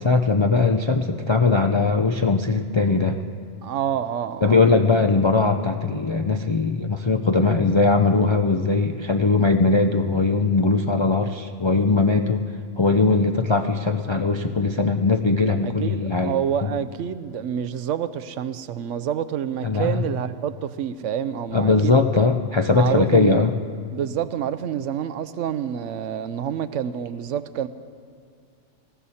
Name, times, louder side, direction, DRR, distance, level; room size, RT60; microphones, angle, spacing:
voice 1, 0.0-3.2 4.4-12.4 12.8-16.3 19.6-20.0 21.5-23.5, left 3 dB, 50° left, 5 dB, 0.3 m, -20 dB
voice 2, 3.6-4.6 15.6-22.0 22.7-23.4 23.9-27.7, right 9 dB, 80° right, 13 dB, 0.9 m, -27 dB
19.5 x 15.0 x 4.2 m, 2.2 s
omnidirectional pair, 1.3 m